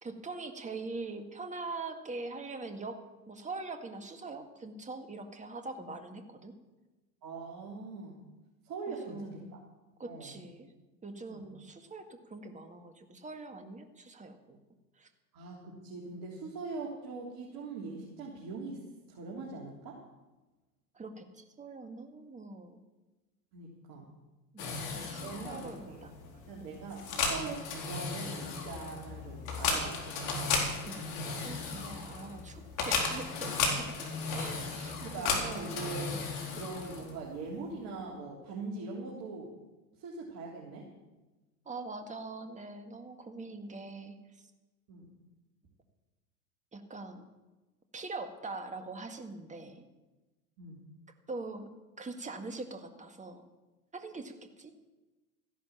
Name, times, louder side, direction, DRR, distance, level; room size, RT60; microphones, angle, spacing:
voice 1, 0.0-3.0 3.3-6.5 8.9-9.4 10.0-10.7 11.0-14.6 15.0-15.1 20.9-22.8 24.5-26.1 26.6-26.8 30.9-34.0 34.3-35.7 36.1-36.2 41.7-44.2 46.7-47.3 47.9-49.9 51.3-51.7 52.0-53.5 53.9-54.7, right 3 dB, 15° right, 6 dB, 1.9 m, -43 dB
voice 2, 7.2-8.2 8.6-9.6 10.1-10.4 11.2-11.5 15.3-18.8 19.1-20.0 23.5-24.1 25.2-26.0 26.5-30.2 35.0-36.3 36.6-39.5 40.0-40.8 44.9-45.1 50.6-50.8, right 3 dB, 45° right, -4 dB, 3.6 m, -42 dB
sound 1, 24.6-37.3, left 4 dB, 55° left, 4.2 m, -35 dB
14.5 x 11.0 x 7.3 m, 1.1 s
hypercardioid pair, 95°, 49 cm